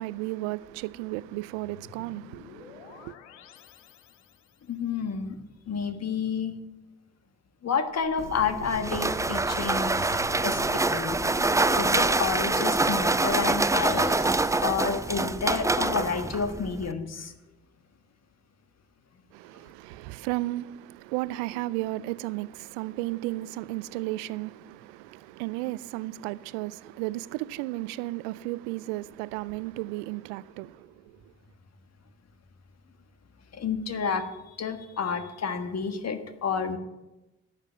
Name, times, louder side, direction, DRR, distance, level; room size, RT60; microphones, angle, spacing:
voice 1, 0.0-3.1 19.3-30.9, right 18 dB, 80° right, 0.5 m, -34 dB
sound 1, 1.4-4.6 7.9-15.6, left 7 dB, 90° left, 0.8 m, -46 dB
voice 2, 4.7-5.3 5.7-6.5 7.6-11.2 11.7-14.1 14.6-17.3 33.5-36.8, left 6 dB, 45° left, 1.5 m, -30 dB
sound 2, 8.2-16.9, right 2 dB, 10° right, 0.5 m, -26 dB
11.5 x 7.5 x 7.5 m
hypercardioid pair, 45°, 35 cm